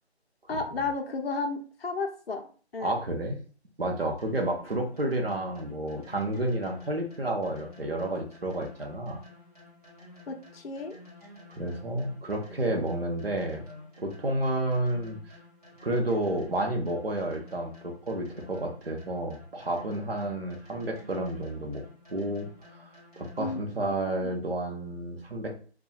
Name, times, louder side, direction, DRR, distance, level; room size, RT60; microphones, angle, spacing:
voice 1, 0.5-2.4 2.7-3.0 10.3-11.0 23.4-24.3, left 3 dB, 65° left, 3 dB, 0.5 m, -33 dB
voice 2, 2.8-3.4 3.8-9.2 11.5-13.6 14.0-15.3 15.8-21.8 22.1-22.5 22.8-22.9 23.2-25.5, right 1 dB, 60° right, 2 dB, 0.7 m, -30 dB
sound 1, 4.2-23.8, left 2 dB, 35° right, 0.9 m, -51 dB
2.8 x 2.2 x 2.2 m, 0.40 s
figure-of-eight pair, 180°, 33 cm